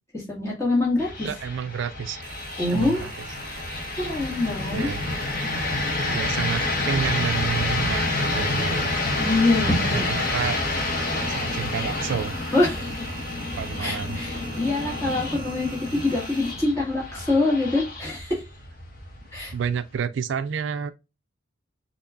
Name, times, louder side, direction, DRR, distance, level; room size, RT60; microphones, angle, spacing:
voice 1, 0.1-1.3 2.6-3.1 4.0-4.9 9.2-10.1 12.5-13.0 13.8-18.4 19.3-19.5, left 2 dB, 15° left, 2.0 m, -24 dB
sound 1, 1.0-19.9, left 2 dB, 45° left, 1.2 m, -29 dB
voice 2, 1.2-2.2 2.7-3.2 4.0-4.1 4.7-5.0 6.1-8.9 9.6-10.6 11.1-12.4 13.6-14.2 19.5-20.9, right 7 dB, 65° right, 0.3 m, -30 dB
Engine, 2.2-16.5, right 4 dB, 45° right, 2.0 m, -44 dB
6.6 x 3.0 x 2.4 m
head